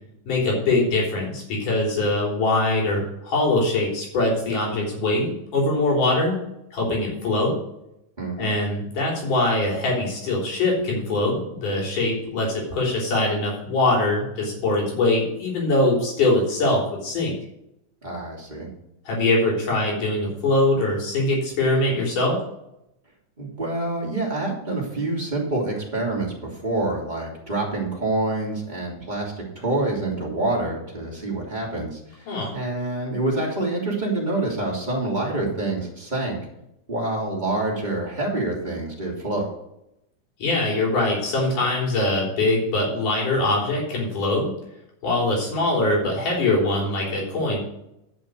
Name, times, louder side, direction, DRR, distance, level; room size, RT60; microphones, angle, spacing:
voice 1, 0.3-6.4 6.7-7.6 8.4-17.4 19.1-22.4 32.3-32.5 40.4-44.5 45.0-47.6, left 2 dB, 80° left, -3 dB, 5.1 m, -22 dB
voice 2, 8.2-8.5 18.0-18.7 23.4-32.0 32.5-36.4 36.9-39.5, right 2 dB, 15° right, -3 dB, 2.7 m, -27 dB
10.5 x 6.3 x 6.4 m, 0.84 s
omnidirectional pair, 3.6 m